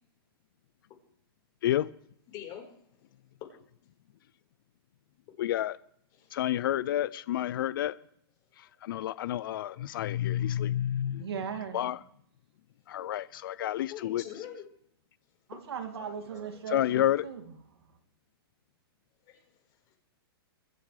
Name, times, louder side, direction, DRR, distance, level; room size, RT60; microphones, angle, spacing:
voice 1, 2.3-2.7 6.1-6.4 13.9-14.6 19.3-19.4 19.9-20.0, left 10 dB, 30° left, 4.4 m, -43 dB
voice 2, 5.4-5.8 6.3-8.0 8.6-11.3 11.7-12.0 12.9-14.2 16.7-17.3, left 12 dB, 60° left, 0.5 m, -29 dB
voice 3, 11.2-11.9 15.5-17.4, right 7 dB, 90° right, 2.4 m, -38 dB
22.5 x 12.0 x 3.3 m
hypercardioid pair, 155°, 13 cm